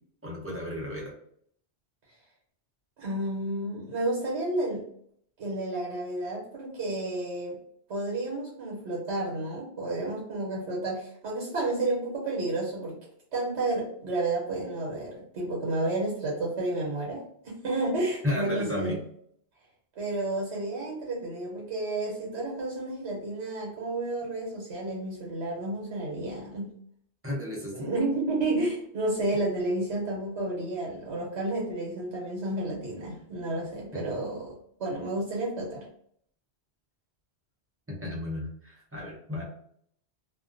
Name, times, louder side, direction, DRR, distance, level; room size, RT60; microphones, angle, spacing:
voice 1, 0.2-1.1 18.2-19.0 27.2-27.9 33.9-34.0 37.9-39.4, left 1 dB, 15° right, -4 dB, 0.5 m, -33 dB
voice 2, 3.0-4.9 5.4-7.6 7.9-13.0 13.3-18.9 19.9-26.7 27.7-35.8, right 2 dB, 90° right, -3 dB, 1.0 m, -31 dB
2.4 x 2.2 x 2.4 m, 0.66 s
omnidirectional pair, 1.1 m